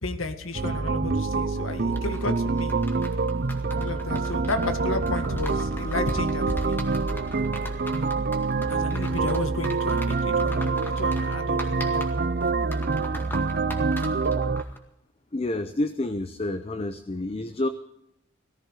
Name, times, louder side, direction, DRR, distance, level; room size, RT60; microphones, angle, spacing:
voice 1, 0.0-2.7 3.7-6.8 8.7-12.0, left 2 dB, 85° left, 7 dB, 1.9 m, -32 dB
sound 1, 0.5-14.6, right 4 dB, 50° right, 0.7 m, -26 dB
sound 2, 1.9-14.8, left 1 dB, 10° left, 2.0 m, -42 dB
voice 2, 15.3-17.7, left 1 dB, 30° left, 10 dB, 0.7 m, -29 dB
18.0 x 14.5 x 4.8 m, 0.78 s
head